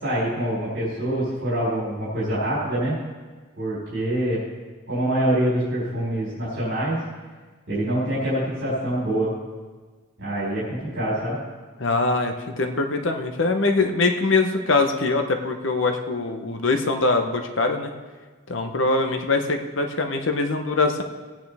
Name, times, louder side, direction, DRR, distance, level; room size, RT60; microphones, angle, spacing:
voice 1, 0.0-3.0 3.6-4.4 4.9-7.0 7.7-9.3 10.2-11.4, right 1 dB, 55° right, -9 dB, 4.5 m, -25 dB
voice 2, 11.8-17.9 18.5-21.0, left 3 dB, 65° left, 5 dB, 0.9 m, -23 dB
17.5 x 9.4 x 3.5 m, 1.4 s
head